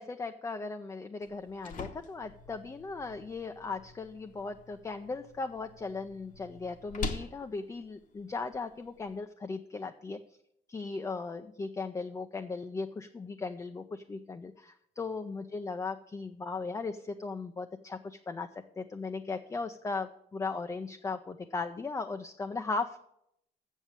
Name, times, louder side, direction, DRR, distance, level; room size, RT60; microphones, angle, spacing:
voice 1, 0.0-10.2 10.7-18.5 18.8-23.0, left 4 dB, 20° left, 7 dB, 0.5 m, -37 dB
sound 1, 1.2-9.2, left 4 dB, 50° left, 1.1 m, -45 dB
7.3 x 7.2 x 8.0 m, 0.75 s
cardioid pair, 110°, 17 cm